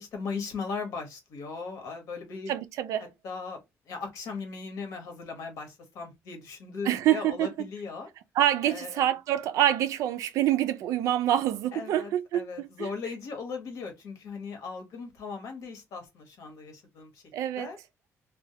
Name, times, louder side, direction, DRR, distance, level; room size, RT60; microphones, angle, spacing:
voice 1, 0.0-2.5 3.2-3.6 3.9-8.1 8.6-9.0 11.7-17.2 17.6-17.8, left 4 dB, 70° left, 0.9 m, -38 dB
voice 2, 2.5-3.1 6.8-7.5 8.4-12.9 17.3-17.7, right 12 dB, 80° right, 0.3 m, -26 dB
2.2 x 2.0 x 2.7 m
cardioid pair, 155°, 5 cm